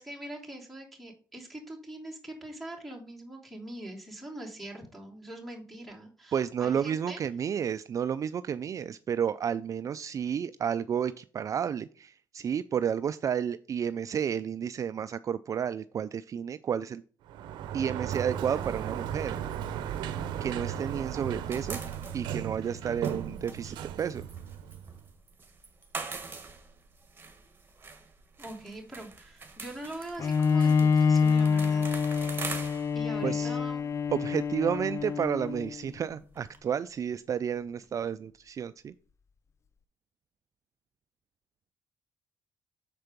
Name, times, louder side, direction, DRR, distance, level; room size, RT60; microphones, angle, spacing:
voice 1, 0.0-7.2 28.4-31.9 32.9-33.9, right 1 dB, ahead, 2 dB, 3.0 m, -43 dB
voice 2, 6.3-17.0 17.7-19.4 20.4-21.8 22.1-24.3 33.2-33.6 34.1-38.9, right 8 dB, 45° right, 13 dB, 0.4 m, -31 dB
Sliding door, 17.3-25.0, right 9 dB, 85° right, 0.6 m, -36 dB
sound 1, 18.6-20.9 21.1-36.6, right 4 dB, 30° right, 1.7 m, -45 dB
Bowed string instrument, 30.2-35.8, left 5 dB, 40° left, 0.4 m, -26 dB
6.7 x 4.4 x 5.2 m, 0.40 s
cardioid pair, 80°, 8 cm